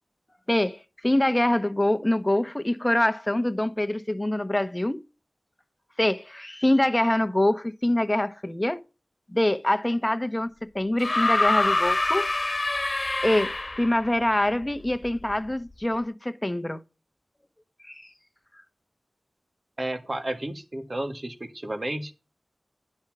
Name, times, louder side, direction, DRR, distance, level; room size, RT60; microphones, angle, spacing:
voice 1, 0.5-5.0 6.0-8.8 9.3-12.3 13.2-16.8 17.8-18.0, left 1 dB, 20° left, 1.0 m, -25 dB
sound 1, 11.0-14.1 15.3-15.4, left 2 dB, 40° left, 1.5 m, -25 dB
voice 2, 19.8-22.1, right 1 dB, 45° right, 1.6 m, -32 dB
10.5 x 4.4 x 6.0 m
wide cardioid pair, 50°, 0 cm